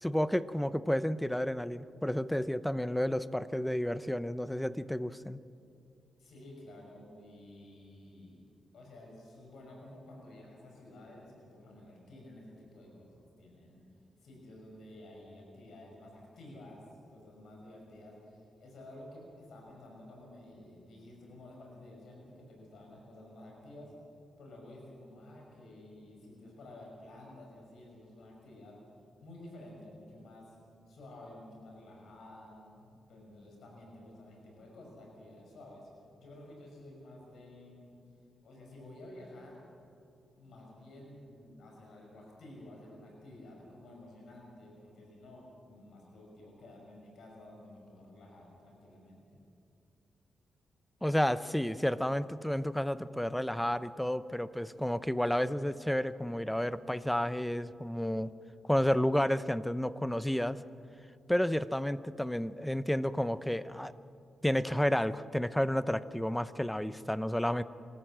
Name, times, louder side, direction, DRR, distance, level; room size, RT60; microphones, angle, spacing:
voice 1, 0.0-5.4 51.0-58.3 58.6-60.6 61.3-63.9 64.4-67.6, equal, 5° left, 15 dB, 0.6 m, -31 dB
voice 2, 6.2-8.4 8.7-13.8 14.2-16.8 17.1-23.9 24.4-28.8 29.2-30.6 30.9-35.9 36.2-38.0 38.4-39.7 40.3-49.4, left 1 dB, 75° left, -1 dB, 5.6 m, -52 dB
25.0 x 14.0 x 7.5 m, 2.5 s
cardioid pair, 95°, 0 cm